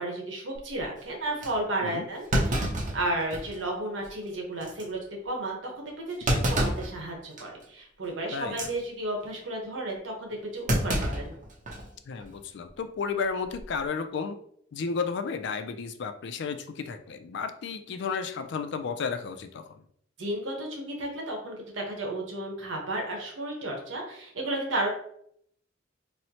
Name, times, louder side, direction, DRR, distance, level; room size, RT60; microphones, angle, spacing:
voice 1, 0.0-11.4 20.2-24.9, right 1 dB, 85° right, 0 dB, 1.0 m, -33 dB
Thump thud, 0.6-0.8 1.4-1.5 2.3-3.6 4.0-4.1 4.6-4.8 6.3-6.9 7.4-7.6 8.4-8.7 10.7-11.9 12.2-12.3 13.4-13.8, right 1 dB, 40° right, 0.6 m, -28 dB
voice 2, 12.1-14.4 14.7-19.7, left 5 dB, 65° left, 8 dB, 0.4 m, -33 dB
4.2 x 2.1 x 2.8 m, 0.68 s
head